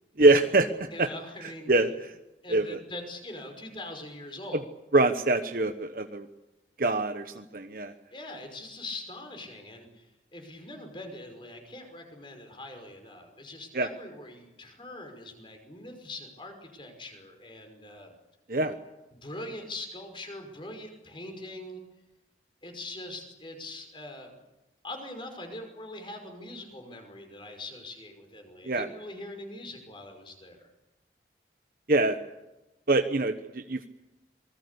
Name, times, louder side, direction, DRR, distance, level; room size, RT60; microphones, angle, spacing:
voice 1, 0.2-0.7 1.0-1.1 1.4-1.9 2.5-2.6 4.9-6.3 6.8-7.9 13.7-13.9 18.5-18.7 28.7-28.9 31.9-32.2 32.9-33.8, right 2 dB, 50° right, 7 dB, 1.1 m, -24 dB
voice 2, 0.9-1.7 2.4-4.7 8.1-18.1 19.1-21.8 22.6-24.4 24.8-30.7, left 2 dB, 30° left, 5 dB, 5.5 m, -42 dB
27.5 x 20.5 x 8.4 m, 1.0 s
head